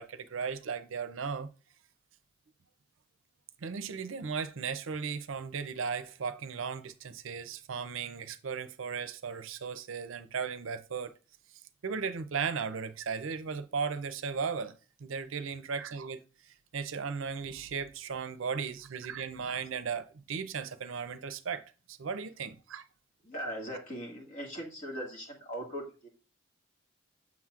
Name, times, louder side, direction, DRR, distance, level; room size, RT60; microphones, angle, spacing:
voice 1, 0.0-1.5 3.6-11.1 11.8-14.7 15.0-16.2 16.7-22.8, right 6 dB, 80° right, 0.5 m, -36 dB
voice 2, 23.2-26.1, equal, 40° left, 1.9 m, -39 dB
7.3 x 6.0 x 2.4 m
head